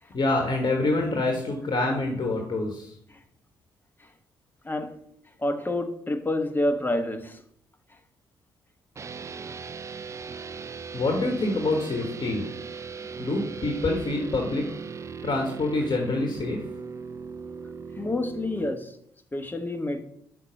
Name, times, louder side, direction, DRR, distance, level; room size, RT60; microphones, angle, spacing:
voice 1, 0.1-2.9 10.9-12.5 13.2-14.7 15.2-16.6, left 2 dB, 40° left, 1.4 m, -26 dB
voice 2, 4.6-5.0 5.4-7.4 18.0-19.0 19.3-20.0, left 1 dB, 15° left, 1.1 m, -28 dB
sound 1, 9.0-18.7, right 5 dB, 25° right, 0.4 m, -38 dB
5.8 x 4.5 x 6.3 m
figure-of-eight pair, 40°, 11 cm